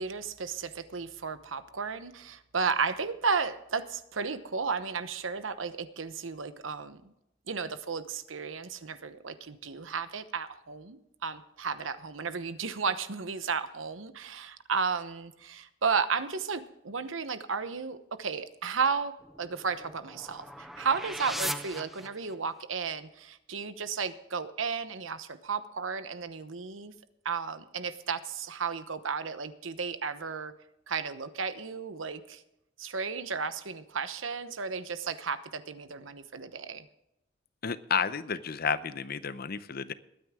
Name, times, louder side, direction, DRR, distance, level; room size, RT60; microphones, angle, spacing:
voice 1, 0.0-7.1 7.5-19.1 19.4-26.9 27.2-30.5 30.9-32.4 32.8-36.9, right 5 dB, 90° right, 12 dB, 1.0 m, -33 dB
sound 1, 19.2-22.6, equal, ahead, 0.7 m, -39 dB
voice 2, 37.6-39.9, left 6 dB, 50° left, 14 dB, 0.7 m, -31 dB
21.5 x 9.4 x 3.7 m, 0.85 s
head